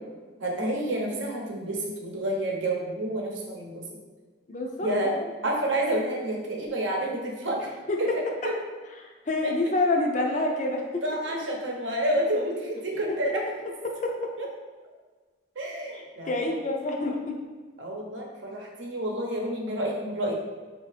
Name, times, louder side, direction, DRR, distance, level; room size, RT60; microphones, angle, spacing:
voice 1, 0.4-3.9 4.8-5.1 5.4-7.7 8.0-8.5 9.4-9.5 11.0-13.4 14.4-14.5 15.6-16.5 17.8-20.3, right 1 dB, 75° right, -1 dB, 0.8 m, -29 dB
voice 2, 4.5-4.9 7.9-8.0 9.0-11.0 13.8-14.1 15.9-17.4, left 2 dB, 40° left, 1 dB, 0.4 m, -27 dB
4.4 x 2.7 x 3.2 m, 1.4 s
head